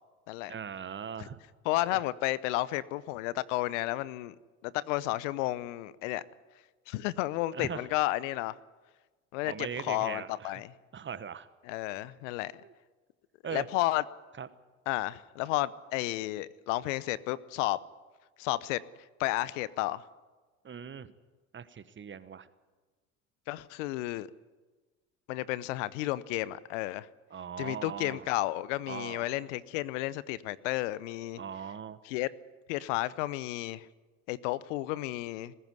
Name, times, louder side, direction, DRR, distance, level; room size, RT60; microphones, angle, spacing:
voice 1, 0.5-1.4 1.9-2.0 7.5-7.8 9.4-10.6 10.9-11.5 13.4-13.6 14.4-14.5 20.6-21.1 21.5-22.5 27.3-28.3 28.9-29.2 31.4-32.0, right 7 dB, 30° right, 14 dB, 1.3 m, -40 dB
voice 2, 1.6-4.3 4.6-6.2 6.9-8.6 9.3-10.7 11.6-12.5 13.5-14.0 14.9-17.8 18.4-18.8 19.2-20.1 23.5-24.3 25.3-27.1 27.6-31.4 32.0-32.3 32.7-33.9 34.3-35.5, left 17 dB, 70° left, 19 dB, 0.8 m, -32 dB
20.0 x 15.5 x 9.5 m, 1.3 s
hypercardioid pair, 65°, 39 cm